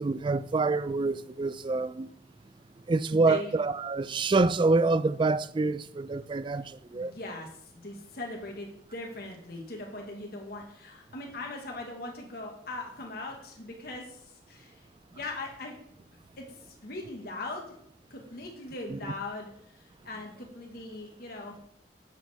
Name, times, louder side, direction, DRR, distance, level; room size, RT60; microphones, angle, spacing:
voice 1, 0.0-2.1 2.9-7.1 18.9-19.0, right 3 dB, 30° right, 0.3 m, -26 dB
voice 2, 3.1-3.6 6.9-7.5 7.8-14.2 14.5-14.7 15.1-15.7 16.4-16.5 16.8-17.7 18.1-21.6, left 2 dB, 60° left, 1.5 m, -40 dB
10.5 x 7.5 x 3.5 m
head